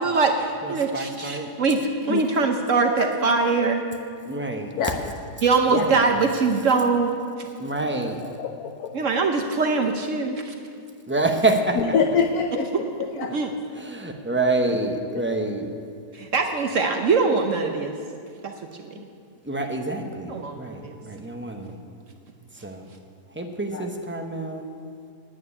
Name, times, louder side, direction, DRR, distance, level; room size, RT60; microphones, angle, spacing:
voice 1, 0.0-1.8 2.0-3.8 5.4-7.1 8.9-10.5 12.7-13.5 16.1-17.9 18.4-18.5 18.8-19.0 20.3-21.0, right 4 dB, 55° right, 3 dB, 1.1 m, -22 dB
voice 2, 0.6-1.5 4.2-4.7 5.7-6.1 7.6-8.2 11.1-11.8 13.7-15.7 19.4-21.8 22.6-22.9 23.4-24.6, right 2 dB, 15° right, 3 dB, 0.5 m, -27 dB
voice 3, 4.8-5.1 5.7-5.8 8.2-8.9 11.8-13.3 15.1-15.4 23.7-23.9, left 6 dB, 70° left, 5 dB, 1.1 m, -26 dB
9.7 x 8.9 x 9.7 m, 2.3 s
omnidirectional pair, 1.7 m